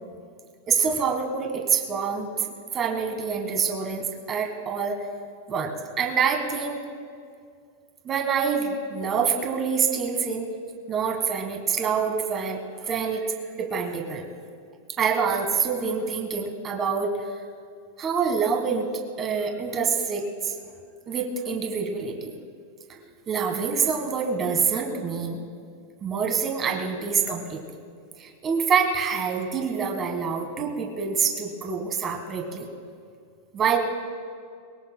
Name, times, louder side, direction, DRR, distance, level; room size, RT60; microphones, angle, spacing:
voice 1, 0.7-2.3 2.7-5.0 5.5-6.8 8.0-10.4 10.9-14.2 15.0-17.1 18.0-18.9 19.2-20.5 21.1-22.3 22.9-25.4 26.0-27.6 28.2-32.7 33.5-33.8, right 6 dB, 20° right, 2 dB, 1.5 m, -26 dB
23.0 x 20.5 x 2.2 m, 2.2 s
supercardioid pair, 170°, 0 cm